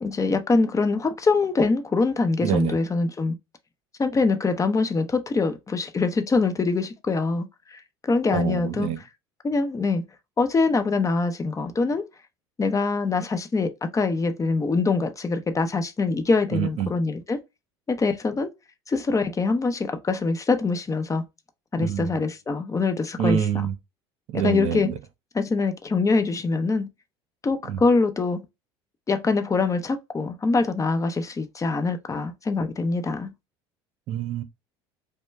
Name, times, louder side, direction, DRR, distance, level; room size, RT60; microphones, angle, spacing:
voice 1, 0.0-3.3 4.0-8.9 9.4-10.0 10.4-12.1 12.6-17.4 17.9-18.5 18.9-21.2 21.7-23.7 24.3-24.9 25.3-26.8 27.4-28.4 29.1-33.3, left 3 dB, 25° left, 0.8 m, -24 dB
voice 2, 2.4-2.8 8.3-9.0 16.5-16.9 21.8-22.2 23.2-23.7 24.3-25.0 27.7-27.8 34.1-34.4, right 9 dB, 55° right, 0.8 m, -26 dB
5.1 x 2.2 x 3.4 m
hypercardioid pair, 80°, 13 cm